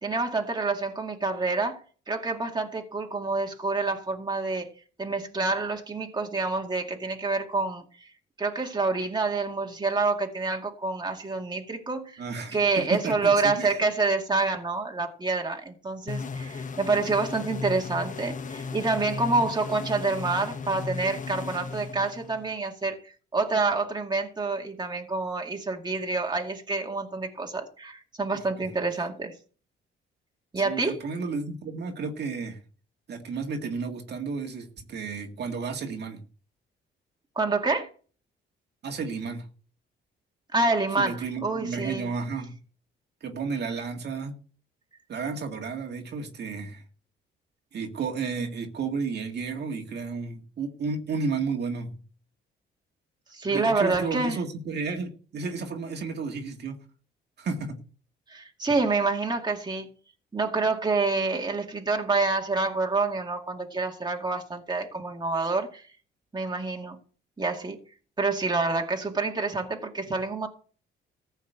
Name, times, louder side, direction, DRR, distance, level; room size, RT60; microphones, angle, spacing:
voice 1, 0.0-4.7 5.0-8.1 8.4-12.2 12.5-29.4 30.5-31.0 37.4-37.9 40.5-42.1 53.3-54.4 58.3-59.9 60.3-65.9 66.3-67.0 67.4-67.8 68.2-70.5, right 3 dB, 20° right, 2 dB, 2.2 m, -27 dB
voice 2, 12.2-13.8 28.3-28.7 30.6-32.6 33.1-36.2 38.8-39.5 41.0-42.5 43.2-44.3 45.1-46.8 47.7-52.0 53.5-56.8 57.4-57.8, right 4 dB, 55° right, 3 dB, 2.0 m, -32 dB
sound 1, 16.1-22.6, left 5 dB, 40° left, 1.1 m, -36 dB
14.5 x 5.6 x 8.1 m, 0.41 s
cardioid pair, 90°, 20 cm